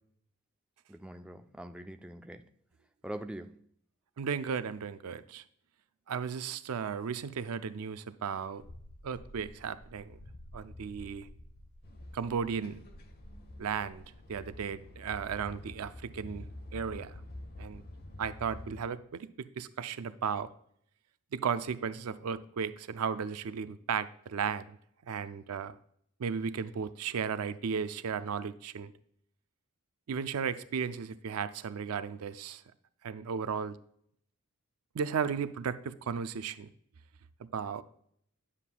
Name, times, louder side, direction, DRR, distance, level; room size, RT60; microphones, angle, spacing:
voice 1, 0.9-2.5 3.0-3.6, right 1 dB, 5° right, 6 dB, 0.3 m, -43 dB
voice 2, 4.2-5.4 6.1-8.7 9.0-10.2 10.5-11.3 12.1-12.8 13.6-14.0 14.3-17.2 17.6-17.8 18.2-20.5 21.3-24.8 25.0-25.8 26.2-28.9 30.1-32.6 33.0-33.8 34.9-36.7 37.4-37.8, right 6 dB, 75° right, 13 dB, 0.4 m, -35 dB
sound 1, 8.6-14.3, left 1 dB, 85° left, 0.9 m, -52 dB
sound 2, 11.8-18.9, left 1 dB, 45° left, 0.9 m, -47 dB
9.8 x 7.3 x 2.2 m, 0.68 s
head